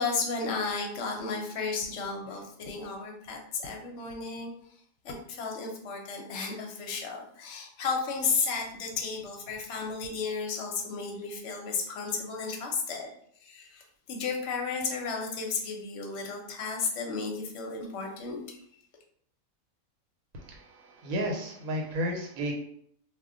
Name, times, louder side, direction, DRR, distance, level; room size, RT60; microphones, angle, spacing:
voice 1, 0.0-4.5 5.0-13.1 13.4-13.8 14.1-18.6, left 4 dB, 60° left, 1 dB, 0.8 m, -33 dB
voice 2, 20.3-22.5, equal, 80° right, 1 dB, 1.1 m, -33 dB
2.3 x 2.1 x 3.6 m, 0.67 s
omnidirectional pair, 1.5 m